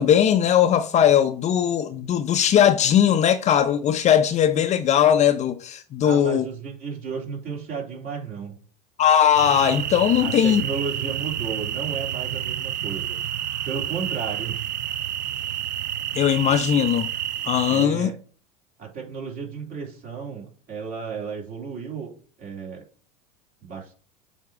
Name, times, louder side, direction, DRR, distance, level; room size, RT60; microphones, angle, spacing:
voice 1, 0.0-6.4 9.0-10.6 16.1-17.1 17.4-18.1, left 9 dB, 35° left, 0.6 m, -19 dB
voice 2, 6.0-8.6 10.2-13.2 13.6-14.5 17.7-18.2 18.8-22.8 23.6-23.9, right 6 dB, 45° right, 3.1 m, -33 dB
sound 1, 9.3-17.9, right 10 dB, 85° right, 0.4 m, -29 dB
7.7 x 2.9 x 4.7 m
hypercardioid pair, 85°, 21 cm